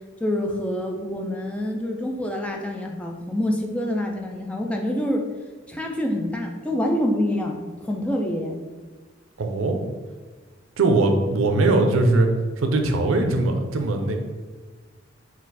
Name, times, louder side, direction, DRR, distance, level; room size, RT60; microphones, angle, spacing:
voice 1, 0.2-5.2 5.7-8.6, left 1 dB, 5° left, 1 dB, 0.3 m, -26 dB
voice 2, 9.4-9.8 10.8-12.3 12.6-14.2, right 2 dB, 85° right, 5 dB, 0.5 m, -20 dB
4.1 x 2.4 x 4.0 m, 1.3 s
head